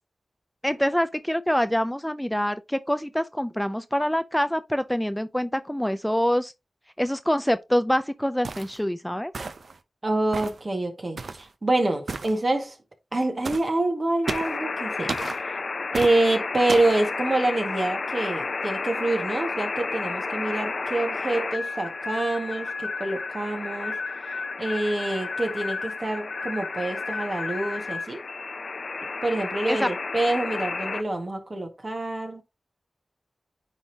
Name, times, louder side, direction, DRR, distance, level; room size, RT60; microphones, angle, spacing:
voice 1, 0.6-6.5 7.0-9.3 29.6-29.9, equal, 5° left, 0.4 m, -25 dB
sound 1, 8.4-8.8 9.3-9.8 10.3-10.6 11.2-11.5 12.1-12.3 13.4-13.7 14.3-14.6 15.1-15.4 15.9-16.2 16.7-17.0, right 4 dB, 75° right, 0.6 m, -32 dB
voice 2, 10.0-12.8 13.1-15.2 15.9-24.0 24.6-28.2 29.2-32.4, right 2 dB, 45° right, 1.8 m, -26 dB
sound 2, 14.2-31.0, left 4 dB, 65° left, 0.6 m, -31 dB
9.8 x 3.6 x 2.8 m
cardioid pair, 50°, 0 cm